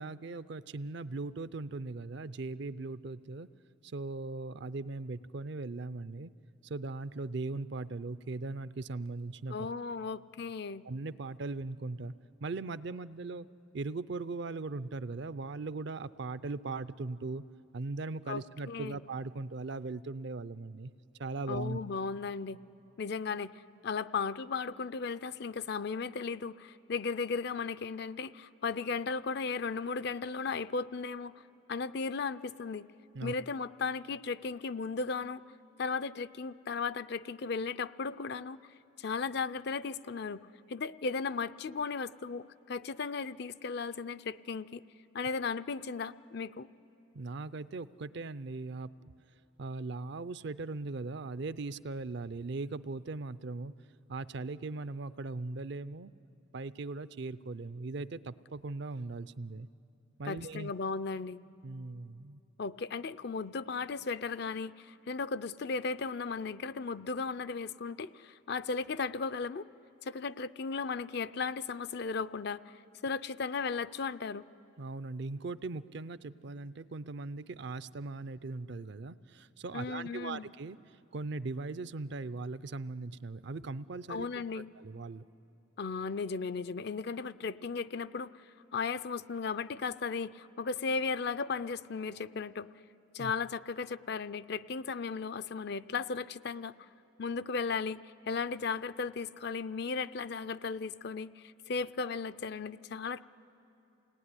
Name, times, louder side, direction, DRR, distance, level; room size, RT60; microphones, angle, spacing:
voice 1, 0.0-3.5 3.8-6.3 6.6-9.7 10.8-12.1 12.4-13.5 13.7-17.4 17.7-20.9 21.2-21.8 33.1-33.3 47.1-48.9 49.6-53.7 54.1-56.1 56.5-59.7 60.2-60.7 61.6-62.4 74.8-80.8 81.1-84.3 84.8-85.2 93.2-93.3, right 3 dB, 60° right, 16 dB, 0.5 m, -39 dB
voice 2, 9.5-10.8 18.3-19.0 21.5-22.6 23.0-31.4 31.7-32.9 33.2-35.4 35.8-38.6 39.0-44.8 45.1-46.7 60.2-61.4 62.6-69.6 70.0-72.8 73.0-74.4 79.7-80.5 84.1-84.7 85.8-88.4 88.7-92.7 93.1-96.7 97.2-103.2, left 4 dB, 55° left, 14 dB, 0.5 m, -36 dB
28.5 x 19.0 x 9.8 m, 2.9 s
head